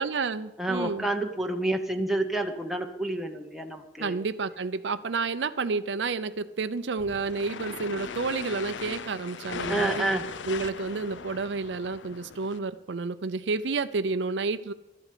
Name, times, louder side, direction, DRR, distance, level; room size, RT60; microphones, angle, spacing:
voice 1, 0.0-1.0 4.0-10.1 10.5-14.7, right 4 dB, 70° right, 10 dB, 0.5 m, -30 dB
voice 2, 0.6-4.2 9.7-10.2, right 2 dB, ahead, 2 dB, 0.9 m, -29 dB
sound 1, 7.0-12.6, left 5 dB, 85° left, 0.6 m, -38 dB
12.5 x 8.0 x 8.4 m, 1.0 s
head